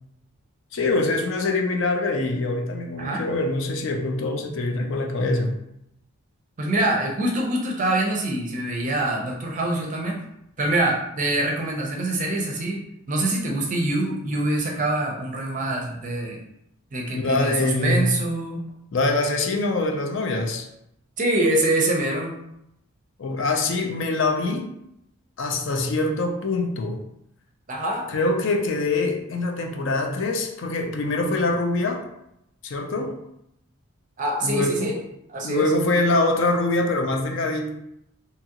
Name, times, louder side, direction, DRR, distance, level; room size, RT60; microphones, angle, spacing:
voice 1, 0.7-5.6 17.1-18.2 18.9-20.7 23.2-24.7 25.4-27.0 28.1-32.1 32.6-33.2 34.4-35.0 35.4-37.7, left 2 dB, 55° left, 3 dB, 0.4 m, -24 dB
voice 2, 6.6-10.2 10.6-16.4 16.9-18.6 21.2-22.3 27.7-28.0 34.2-35.0 35.3-35.7, right 1 dB, 35° right, 0 dB, 0.5 m, -25 dB
2.8 x 2.4 x 2.8 m, 0.80 s
head